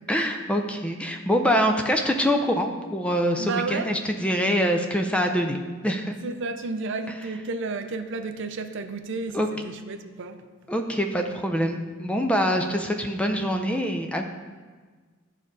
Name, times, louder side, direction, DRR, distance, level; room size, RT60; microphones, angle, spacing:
voice 1, 0.1-5.6 5.8-6.1 9.3-9.5 10.7-14.2, equal, 5° left, 0.4 m, -24 dB
voice 2, 3.4-3.9 6.2-10.5, right 3 dB, 60° right, 0.5 m, -32 dB
10.5 x 3.7 x 5.3 m
head